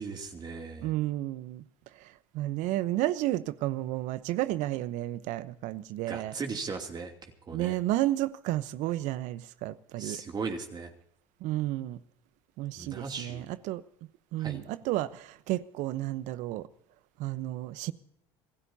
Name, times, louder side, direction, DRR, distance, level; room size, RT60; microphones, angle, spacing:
voice 1, 0.0-0.9 6.1-7.8 10.0-10.9 12.8-13.5 14.4-14.6, right 4 dB, 30° right, 2.8 m, -37 dB
voice 2, 0.8-1.6 1.9-6.3 7.5-10.2 11.4-12.0 12.6-13.8 14.3-16.7 17.2-17.9, right 15 dB, 60° right, 1.0 m, -32 dB
27.0 x 15.5 x 2.8 m
hypercardioid pair, 90°, 14 cm